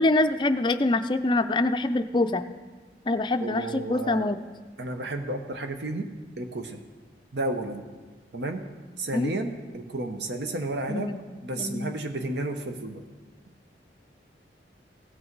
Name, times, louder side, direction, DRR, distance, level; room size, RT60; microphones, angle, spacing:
voice 1, 0.0-2.4 3.1-4.4 9.1-9.3 10.9-11.2 11.6-11.9, left 2 dB, 25° left, 10 dB, 0.4 m, -25 dB
voice 2, 3.4-4.3 4.8-6.1 6.4-6.8 7.3-7.8 8.3-8.6 9.0-11.1 11.4-13.0, right 2 dB, 75° right, 6 dB, 1.0 m, -32 dB
16.5 x 6.2 x 4.6 m, 1.3 s
head